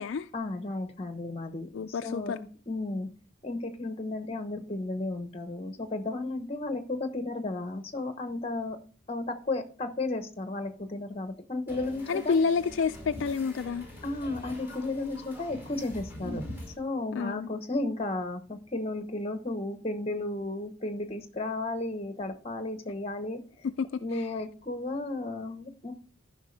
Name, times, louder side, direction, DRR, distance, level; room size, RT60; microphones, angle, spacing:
voice 1, 0.3-1.7 2.0-3.1 3.4-8.8 9.1-12.3 14.0-16.4 16.8-23.4 24.0-25.9, left 2 dB, 30° left, 1.0 m, -33 dB
voice 2, 1.7-2.4 12.1-13.9 17.1-17.5 23.6-24.3, left 5 dB, 65° left, 0.3 m, -29 dB
sound 1, 11.7-16.7, left 1 dB, 10° right, 4.8 m, -43 dB
13.5 x 5.8 x 3.3 m
head